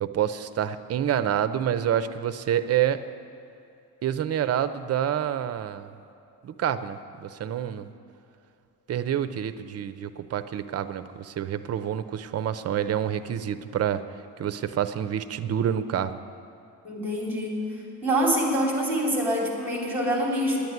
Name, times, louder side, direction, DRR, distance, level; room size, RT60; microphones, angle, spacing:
voice 1, 0.0-3.0 4.0-5.9 6.4-7.9 8.9-14.0 14.4-16.2, right 10 dB, 45° right, 12 dB, 0.5 m, -27 dB
voice 2, 16.8-17.6 18.0-20.6, right 1 dB, 5° right, -2 dB, 3.3 m, -25 dB
10.0 x 9.4 x 9.3 m, 2.7 s
cardioid pair, 145°, 36 cm